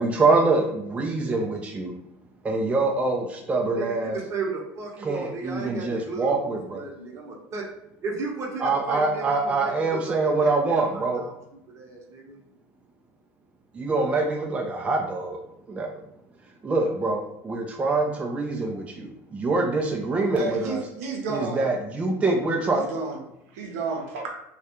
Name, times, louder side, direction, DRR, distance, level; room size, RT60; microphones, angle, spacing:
voice 1, 0.0-1.9 2.4-4.2 5.0-6.8 8.6-11.2 13.7-15.4 15.7-15.9 16.6-20.8 21.3-22.8, right 3 dB, 15° right, 1 dB, 0.3 m, -25 dB
voice 2, 4.1-7.6 8.0-11.3 11.7-12.4, right 4 dB, 35° right, -1 dB, 0.7 m, -35 dB
voice 3, 20.4-21.6 22.7-23.2 23.5-24.4, right 4 dB, 85° right, 0 dB, 0.6 m, -31 dB
2.3 x 2.1 x 2.8 m, 0.81 s
supercardioid pair, 110°, 8 cm